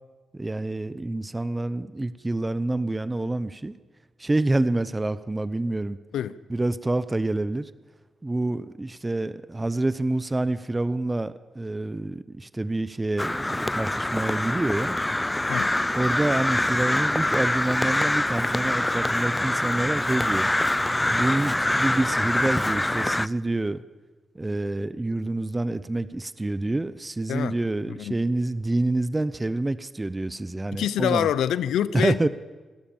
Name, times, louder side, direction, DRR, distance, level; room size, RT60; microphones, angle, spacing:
voice 1, 0.3-3.8 4.2-6.0 6.5-7.7 8.2-15.0 16.0-20.5 21.1-23.8 24.3-31.3 31.9-32.3, right 2 dB, 20° right, 0.9 m, -27 dB
Crow, 13.2-23.3, left 1 dB, 15° left, 0.5 m, -25 dB
voice 2, 30.7-32.3, left 10 dB, 90° left, 0.7 m, -26 dB
28.5 x 13.0 x 7.2 m
cardioid pair, 70°, 0 cm